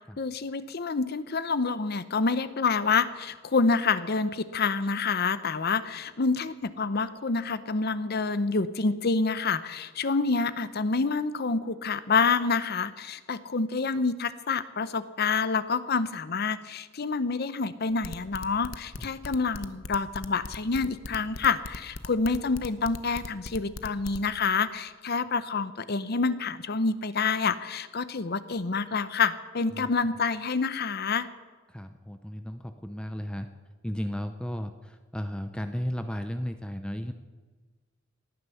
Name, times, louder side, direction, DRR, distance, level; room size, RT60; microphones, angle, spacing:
voice 1, 0.2-31.3, left 4 dB, 55° left, 14 dB, 0.7 m, -27 dB
sound 1, 17.9-24.2, left 3 dB, 85° left, 0.9 m, -39 dB
voice 2, 31.7-33.5 33.8-37.1, equal, 5° left, 8 dB, 0.6 m, -34 dB
18.5 x 9.9 x 7.0 m, 1.3 s
head